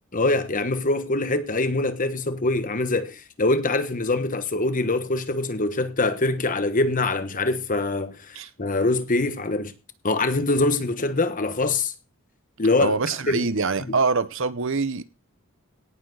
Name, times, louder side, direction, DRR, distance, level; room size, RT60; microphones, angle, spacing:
voice 1, 0.1-9.7 10.0-11.9 12.6-13.0 13.3-13.4 13.9-14.0, left 2 dB, 40° left, 1.3 m, -24 dB
voice 2, 12.8-15.0, right 4 dB, 65° right, 0.9 m, -24 dB
17.5 x 7.3 x 4.0 m
head